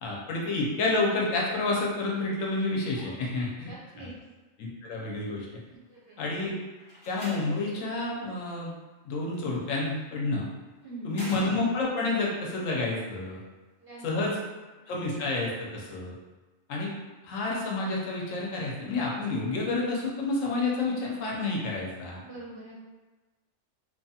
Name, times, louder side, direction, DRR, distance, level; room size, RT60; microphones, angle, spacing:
voice 1, 0.0-3.7 4.0-4.1 4.6-5.5 6.2-6.6 7.1-8.7 9.1-10.5 11.0-13.4 14.0-14.4 14.9-16.2 16.7-16.9 17.2-22.2, left 2 dB, 75° left, -3 dB, 1.0 m, -29 dB
voice 2, 2.9-4.1 5.9-6.2 10.8-11.2 13.8-14.0 14.3-14.4 22.1-22.8, right 2 dB, 50° right, -8 dB, 0.7 m, -44 dB
Slam, 6.8-7.8 9.3-9.8 11.1-12.1, equal, 20° left, 0.7 m, -42 dB
3.0 x 2.3 x 2.7 m, 1.2 s
omnidirectional pair, 1.4 m